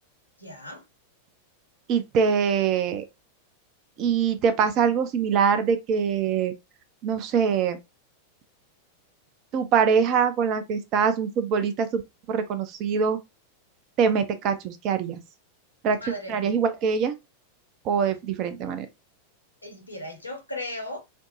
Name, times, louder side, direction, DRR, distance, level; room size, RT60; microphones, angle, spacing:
voice 1, 0.4-0.8 16.0-16.5 19.6-21.0, left 1 dB, 85° left, 0.9 m, -36 dB
voice 2, 1.9-3.0 4.0-6.5 7.0-7.8 9.5-12.0 12.3-13.2 14.0-15.2 15.8-17.1 17.8-18.9, right 6 dB, 40° right, 0.5 m, -23 dB
3.4 x 2.0 x 2.6 m
figure-of-eight pair, 90°, 0 cm